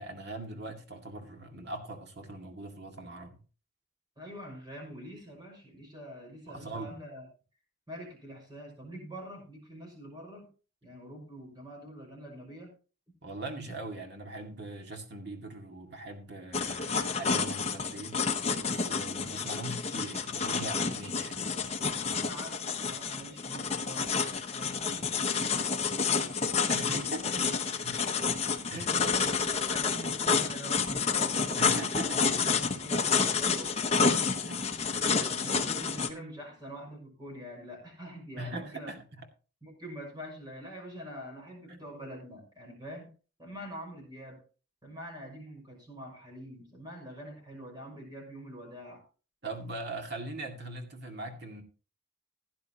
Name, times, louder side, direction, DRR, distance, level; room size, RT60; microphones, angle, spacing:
voice 1, 0.0-3.4 6.5-6.9 13.2-18.2 18.6-21.4 26.7-28.0 28.7-29.1 31.6-32.7 34.1-34.6 35.2-35.3 38.4-39.3 41.7-42.0 49.4-51.6, right 2 dB, 50° right, 2.2 m, -41 dB
voice 2, 4.2-7.3 7.9-10.5 10.8-12.7 13.7-13.8 22.1-25.9 26.7-26.9 28.6-32.2 32.5-34.1 35.3-38.9 39.6-43.1 43.4-44.4 44.8-49.0, equal, 20° right, 5.8 m, -45 dB
sound 1, 16.5-36.1, left 5 dB, 30° left, 1.0 m, -29 dB
16.0 x 10.5 x 2.9 m
head